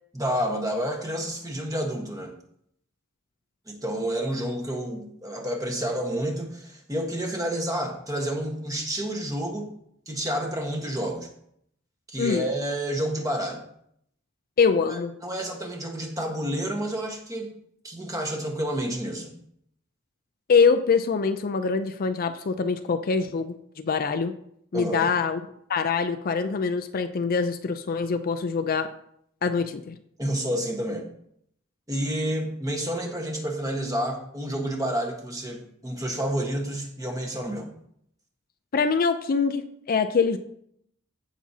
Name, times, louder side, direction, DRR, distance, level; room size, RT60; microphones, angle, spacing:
voice 1, 0.1-2.3 3.7-9.7 10.1-11.3 12.1-13.6 14.9-17.5 17.8-19.3 24.7-25.1 30.2-31.1 31.9-37.7, right 1 dB, 15° right, 2 dB, 1.4 m, -29 dB
voice 2, 12.2-12.5 14.6-15.1 20.5-24.3 24.7-25.4 25.7-28.9 29.4-29.9 38.7-40.4, left 5 dB, 45° left, 9 dB, 0.4 m, -24 dB
15.5 x 6.1 x 2.8 m, 0.71 s
head